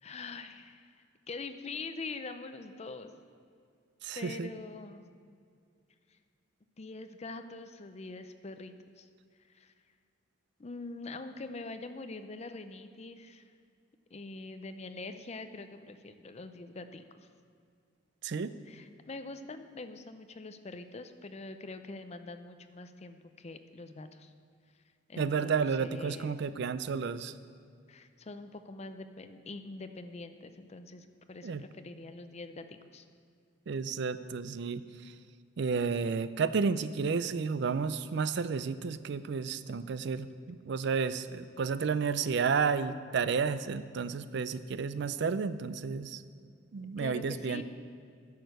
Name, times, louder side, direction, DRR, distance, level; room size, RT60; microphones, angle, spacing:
voice 1, 0.0-3.1 4.2-5.1 6.1-6.2 6.8-9.1 9.5-9.7 10.6-13.5 14.1-17.3 18.7-24.3 25.1-26.4 27.9-33.1 47.0-47.6, left 3 dB, 35° left, 9 dB, 0.5 m, -44 dB
voice 2, 4.0-4.5 18.2-18.5 25.2-27.3 31.4-31.6 33.7-34.8 35.6-46.2 46.7-47.6, right 5 dB, 60° right, 13 dB, 0.4 m, -31 dB
10.5 x 6.6 x 6.6 m, 2.3 s
head